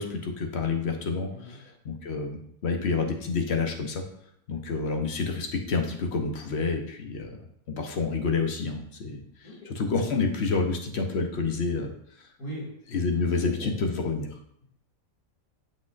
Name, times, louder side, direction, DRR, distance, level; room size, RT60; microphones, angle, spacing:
voice 1, 0.0-1.3 1.9-4.0 4.5-7.4 7.7-9.2 9.8-11.9 12.9-14.3, left 4 dB, 50° left, 4 dB, 1.0 m, -28 dB
voice 2, 12.4-12.7 13.4-13.7, equal, 75° left, -8 dB, 2.8 m, -40 dB
7.4 x 6.1 x 2.5 m, 0.71 s
omnidirectional pair, 1.5 m